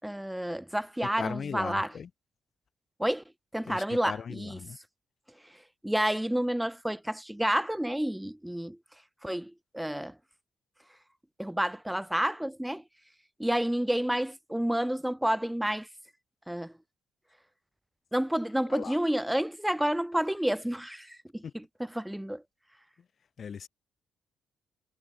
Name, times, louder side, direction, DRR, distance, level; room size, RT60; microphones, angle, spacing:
voice 1, 0.0-1.9 3.0-3.2 3.5-4.6 5.4-8.8 9.2-10.2 11.4-12.8 13.4-15.9 16.5-16.7 18.1-21.6 22.0-22.4, right 1 dB, 5° right, 5.6 m, -30 dB
voice 2, 1.0-2.1 3.6-4.8 18.7-19.0 21.4-21.5 23.0-23.1 23.4-23.7, left 7 dB, 50° left, 5.5 m, -38 dB
hypercardioid pair, 45°, 0 cm